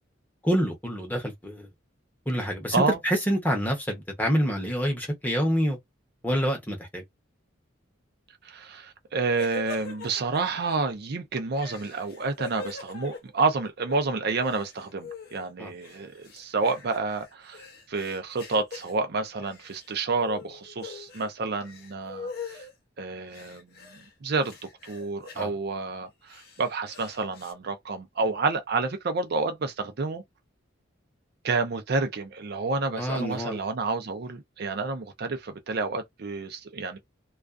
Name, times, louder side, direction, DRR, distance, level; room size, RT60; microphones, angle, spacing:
voice 1, 0.4-1.7 2.3-2.7 3.0-5.8 6.2-7.0 15.6-15.7 25.3-25.5 33.0-33.6, equal, 10° left, 0.7 m, -27 dB
voice 2, 8.4-22.6 23.0-23.8 24.2-24.5 24.8-30.2 31.4-37.0, right 3 dB, 55° right, 0.5 m, -29 dB
sound 1, 9.3-10.7 11.5-13.9 14.2-15.5 15.8-18.9 19.4-19.9 20.2-21.3 21.6-22.7 23.3-24.1 24.4-25.4 26.1-27.5, left 3 dB, 50° left, 0.8 m, -42 dB
2.4 x 2.3 x 2.4 m
head